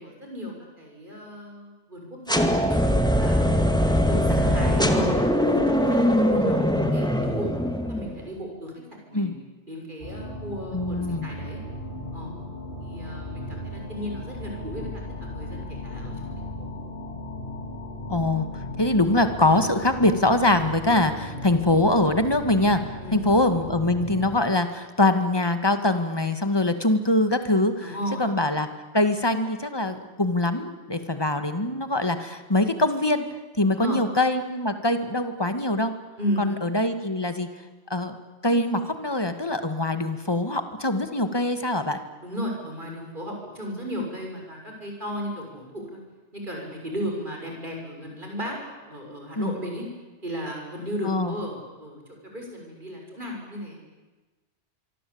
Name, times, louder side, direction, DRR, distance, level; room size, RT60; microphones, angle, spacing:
voice 1, 0.0-2.5 3.2-5.1 5.5-6.7 6.9-7.5 7.9-9.4 9.7-11.6 12.1-12.3 12.8-16.8 23.0-23.2 27.8-28.3 33.6-34.0 36.2-36.4 42.2-46.0 46.3-49.9 50.2-53.8, equal, 45° right, 1 dB, 7.1 m, -35 dB
sound 1, 2.3-8.2, equal, 5° left, 2.2 m, -22 dB
voice 2, 4.3-4.9 9.1-9.3 10.7-11.3 18.1-27.9 28.2-28.7 28.9-33.3 33.6-35.9 36.4-37.5 37.9-38.1 38.4-42.0 49.4-49.5 51.1-51.3, left 2 dB, 20° left, 8 dB, 2.0 m, -23 dB
sound 2, 10.0-24.4, left 1 dB, 55° left, 5.3 m, -36 dB
25.0 x 24.5 x 8.8 m, 1.2 s
omnidirectional pair, 1.1 m